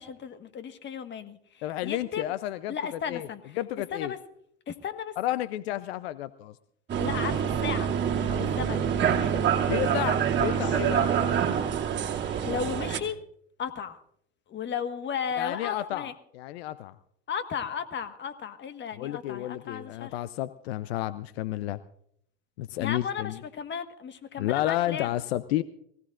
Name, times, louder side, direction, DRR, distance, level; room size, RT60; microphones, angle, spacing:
voice 1, 0.0-2.3 2.7-3.4 3.9-4.2 4.7-5.1 7.0-7.9 8.3-9.4 12.4-13.2 13.6-14.0 14.5-16.1 17.3-20.2 22.8-25.1, left 7 dB, 35° left, 9 dB, 1.5 m, -35 dB
voice 2, 1.6-3.3 3.6-4.1 5.2-6.5 9.6-11.1 15.4-17.0 19.0-21.8 22.6-23.4 24.4-25.6, left 14 dB, 75° left, 15 dB, 0.7 m, -31 dB
sound 1, 6.9-13.0, right 8 dB, 35° right, 2.7 m, -26 dB
24.0 x 17.0 x 2.5 m, 0.69 s
hypercardioid pair, 85°, 31 cm